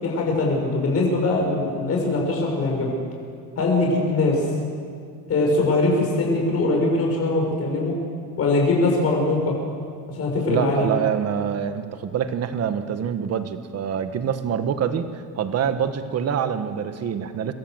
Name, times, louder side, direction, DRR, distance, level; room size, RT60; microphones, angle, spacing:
voice 1, 0.0-3.0 3.6-4.4 5.3-7.9 8.4-9.5 10.1-10.9, left 2 dB, 35° left, -1 dB, 6.3 m, -22 dB
voice 2, 10.5-17.5, right 8 dB, 40° right, 9 dB, 1.5 m, -25 dB
26.5 x 22.0 x 8.0 m, 2.3 s
cardioid pair, 175°, 40 cm